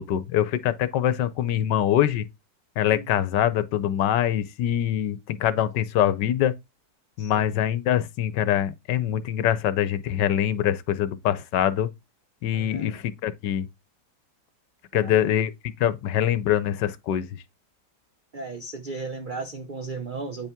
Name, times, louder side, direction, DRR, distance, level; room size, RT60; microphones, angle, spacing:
voice 1, 0.0-2.2 2.8-6.5 7.2-11.9 12.4-13.7 14.9-15.5 15.8-17.3, left 11 dB, 80° left, 1.3 m, -24 dB
voice 2, 7.2-7.5 12.5-13.0 14.9-15.4 18.3-20.5, right 3 dB, 80° right, 0.4 m, -36 dB
8.7 x 5.5 x 3.6 m
omnidirectional pair, 1.9 m